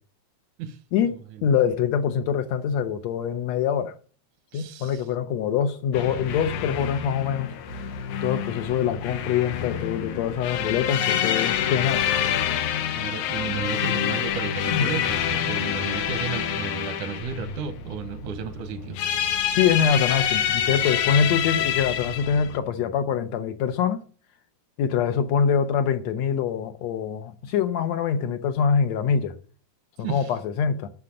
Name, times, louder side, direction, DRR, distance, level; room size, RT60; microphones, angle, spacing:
voice 1, 0.6-1.5 4.5-5.1 12.9-19.0 30.0-30.3, right 7 dB, 85° right, 2.5 m, -33 dB
voice 2, 1.4-3.9 4.5-7.5 8.2-12.1 14.7-14.9 19.6-24.0 24.8-29.4 30.0-30.9, left 7 dB, 70° left, 2.0 m, -24 dB
sound 1, 5.9-22.6, left 9 dB, 90° left, 2.5 m, -27 dB
9.7 x 6.7 x 8.6 m
omnidirectional pair, 3.3 m